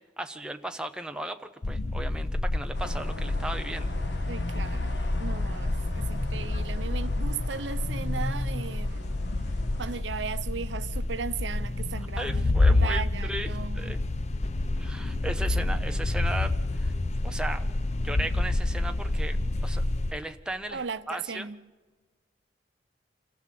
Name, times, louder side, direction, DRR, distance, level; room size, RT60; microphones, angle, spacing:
voice 1, 0.2-3.9 12.2-14.0 14.8-16.9 17.2-17.6 18.0-19.8 20.1-20.8 21.1-21.5, right 1 dB, 5° right, 0.7 m, -36 dB
sound 1, 1.6-20.1, left 2 dB, 35° left, 0.6 m, -28 dB
sound 2, 2.7-10.0, left 2 dB, 70° left, 1.5 m, -43 dB
voice 2, 4.3-9.2 9.8-14.0 20.7-21.6, right 5 dB, 80° right, 0.7 m, -37 dB
26.0 x 15.5 x 7.7 m
head